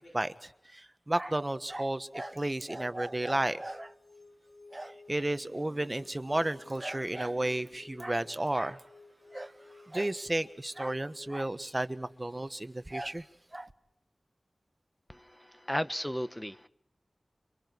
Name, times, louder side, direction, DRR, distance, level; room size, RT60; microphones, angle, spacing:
voice 1, 0.0-3.9 4.7-8.8 9.3-9.5 9.9-13.3 13.5-13.7, right 1 dB, 30° right, 1.3 m, -33 dB
sound 1, 1.3-11.3, left 3 dB, 55° left, 6.3 m, -56 dB
voice 2, 15.1-16.7, equal, 10° left, 1.1 m, -35 dB
29.5 x 24.5 x 4.7 m
wide cardioid pair, 45°, 0 cm